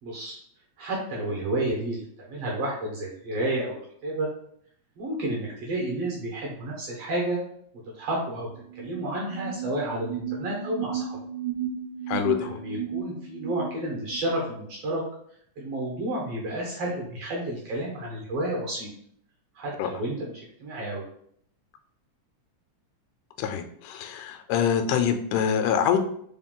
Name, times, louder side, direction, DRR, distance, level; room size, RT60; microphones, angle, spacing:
voice 1, 0.0-0.4 0.8-4.3 5.0-7.4 7.9-11.2 12.4-15.0 15.6-18.9 19.6-20.3 20.6-21.0, right 1 dB, 65° right, -2 dB, 1.6 m, -31 dB
sound 1, 8.6-14.4, right 9 dB, 80° right, 1.9 m, -34 dB
voice 2, 12.1-12.6 19.8-19.9 23.4-26.0, left 8 dB, 85° left, 7 dB, 2.0 m, -25 dB
4.7 x 2.3 x 3.6 m, 0.65 s
omnidirectional pair, 3.5 m